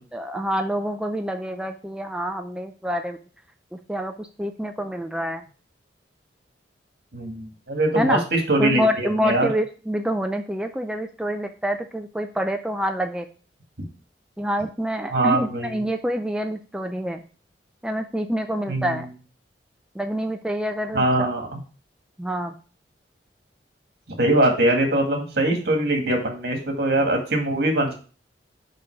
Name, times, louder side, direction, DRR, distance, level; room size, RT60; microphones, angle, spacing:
voice 1, 0.1-3.2 3.7-5.4 7.9-8.2 8.6-13.3 14.4-17.2 17.8-19.1 20.0-21.3 22.2-22.5, equal, 5° right, 5 dB, 0.4 m, -27 dB
voice 2, 7.1-9.5 15.1-15.8 18.7-19.0 20.9-21.6 24.2-27.9, right 1 dB, 65° right, 2 dB, 1.9 m, -22 dB
5.5 x 5.3 x 4.7 m, 0.38 s
head